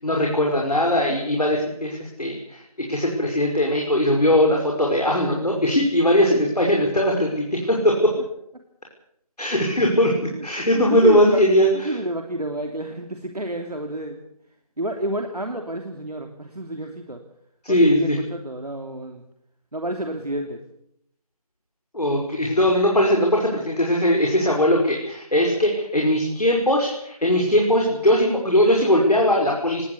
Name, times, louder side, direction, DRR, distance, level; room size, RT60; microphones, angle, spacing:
voice 1, 0.0-2.6 2.9-8.1 9.4-10.1 10.4-12.0 17.6-18.2 21.9-29.8, equal, 85° left, 0 dB, 5.6 m, -20 dB
voice 2, 10.7-14.2 14.8-17.2 17.7-19.2 19.7-20.6, right 1 dB, 85° right, 4 dB, 3.0 m, -29 dB
19.5 x 19.0 x 8.2 m, 0.74 s
figure-of-eight pair, 165°, 19 cm